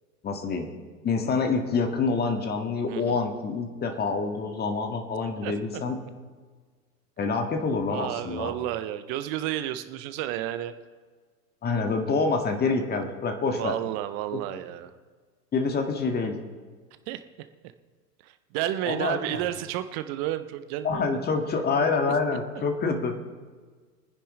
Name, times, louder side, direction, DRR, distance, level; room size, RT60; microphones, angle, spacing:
voice 1, 0.2-0.7 1.0-6.0 7.2-8.5 11.6-13.7 14.3-14.4 15.5-16.4 18.8-19.4 20.8-23.2, left 4 dB, 20° left, 4 dB, 1.7 m, -27 dB
voice 2, 2.9-3.2 5.4-5.5 7.9-10.7 13.5-14.9 17.1-17.2 18.2-21.2, right 13 dB, 20° right, 11 dB, 0.3 m, -31 dB
23.5 x 9.9 x 3.2 m, 1.5 s
figure-of-eight pair, 95°, 48 cm